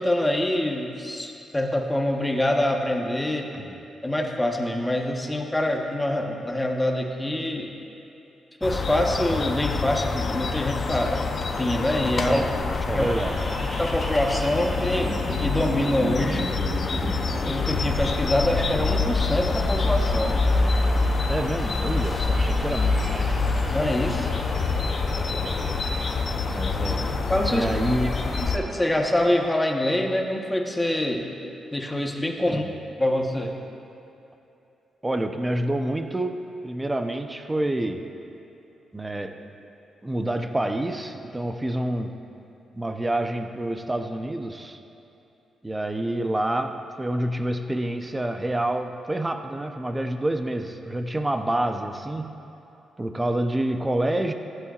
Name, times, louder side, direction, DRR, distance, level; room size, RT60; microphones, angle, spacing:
voice 1, 0.0-3.5 4.0-7.7 8.6-12.4 12.9-13.1 13.8-16.4 17.5-20.4 23.7-24.3 27.3-27.7 28.4-31.3 31.7-32.6 33.0-33.5, left 1 dB, 15° left, 2 dB, 1.2 m, -25 dB
sound 1, 8.6-28.6, left 3 dB, 50° left, 0.8 m, -26 dB
voice 2, 12.9-13.6 21.3-23.5 25.3-25.6 26.5-27.1 27.5-28.3 32.5-32.7 35.0-36.4 36.6-38.0 38.9-39.4 40.0-42.2 42.7-44.8 45.6-52.3 53.0-54.3, right 1 dB, 20° right, 6 dB, 0.8 m, -28 dB
sound 2, 13.0-29.5, right 1 dB, 35° right, 1.4 m, -37 dB
15.0 x 11.0 x 2.5 m, 2.9 s
cardioid pair, 65°, 0 cm